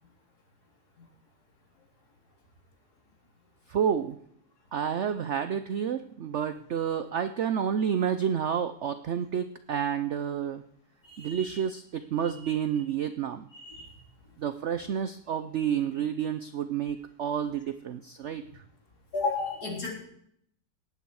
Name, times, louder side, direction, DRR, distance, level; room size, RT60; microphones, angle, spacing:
voice 1, 3.7-4.2 4.7-10.6 11.2-13.5 14.4-18.6, right 8 dB, 65° right, 11 dB, 0.7 m, -30 dB
voice 2, 11.1-11.6 12.4-12.5 13.5-13.8 19.1-20.0, left 3 dB, 60° left, -2 dB, 4.3 m, -33 dB
18.5 x 9.1 x 4.8 m, 0.69 s
omnidirectional pair, 1.9 m